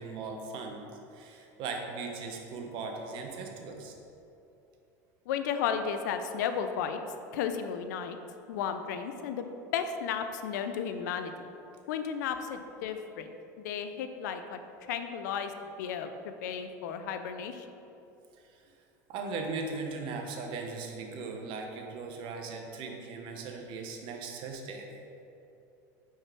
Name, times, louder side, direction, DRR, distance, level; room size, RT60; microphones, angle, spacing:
voice 1, 0.0-3.9 18.4-18.6 19.1-24.9, right 4 dB, 60° right, 3 dB, 0.9 m, -38 dB
voice 2, 5.3-7.0 7.3-8.2 8.5-9.5 9.7-11.3 11.9-14.6 14.9-15.5 15.8-16.1 16.4-17.7, left 7 dB, 80° left, 8 dB, 0.4 m, -33 dB
4.8 x 4.6 x 4.4 m, 2.8 s
hypercardioid pair, 90°, 10 cm